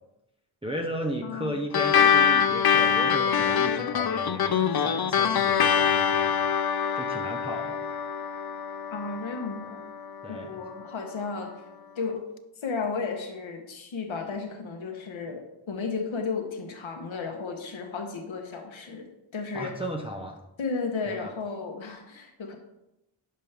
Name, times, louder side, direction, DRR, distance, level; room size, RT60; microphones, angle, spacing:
voice 1, 0.6-7.9 10.2-10.6 19.5-20.4 21.1-21.3, equal, 10° right, 0 dB, 0.8 m, -35 dB
voice 2, 1.2-1.6 8.9-9.8 10.3-11.6 12.0-12.3 12.6-19.1 19.3-19.8 20.6-22.6, left 4 dB, 70° left, 3 dB, 1.1 m, -34 dB
sound 1, 1.7-10.6, left 7 dB, 50° left, 0.6 m, -24 dB
11.0 x 5.4 x 3.4 m, 0.90 s
wide cardioid pair, 65°, 49 cm